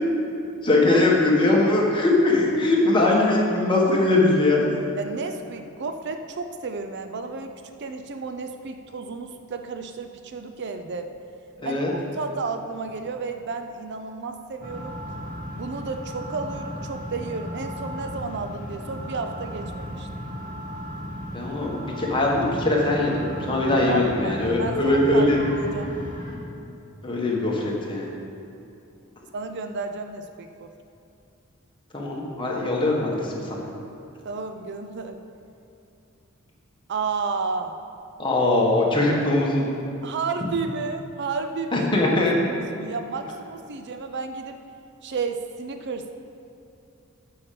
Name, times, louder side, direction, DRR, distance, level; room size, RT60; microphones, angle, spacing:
voice 1, 0.6-4.7 11.6-11.9 21.3-25.4 25.8-25.9 27.0-28.1 31.9-33.6 38.2-39.6 41.7-42.3, left 2 dB, 25° left, -3 dB, 1.5 m, -21 dB
voice 2, 5.0-7.5 7.8-11.1 11.6-15.0 15.5-20.1 23.9-25.9 29.3-30.7 34.2-35.2 36.9-37.8 40.0-42.2 42.5-44.6 45.0-46.1, right 4 dB, 55° right, 7 dB, 0.5 m, -32 dB
sound 1, 14.6-26.4, equal, 40° right, 2.1 m, -35 dB
8.4 x 5.7 x 6.9 m, 2.8 s
head